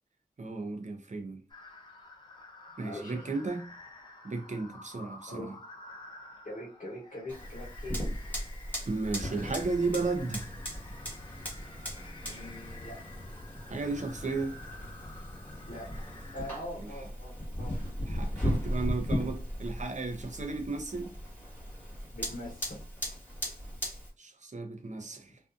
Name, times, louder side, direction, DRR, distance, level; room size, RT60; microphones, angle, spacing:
voice 1, 0.4-1.4 2.8-3.7 4.2-5.5 8.9-10.5 13.7-14.6 16.8-16.9 18.0-21.1 24.2-25.4, right 3 dB, 50° right, 0.6 m, -34 dB
sound 1, 1.5-16.6, left 2 dB, 30° left, 0.6 m, -51 dB
voice 2, 2.8-3.3 5.3-5.5 6.4-8.0 12.2-13.0 15.6-17.8 22.1-22.8, left 1 dB, 60° left, 1.0 m, -43 dB
Fire, 7.3-24.1, equal, 10° left, 1.3 m, -37 dB
2.5 x 2.3 x 2.4 m
wide cardioid pair, 85°, 15 cm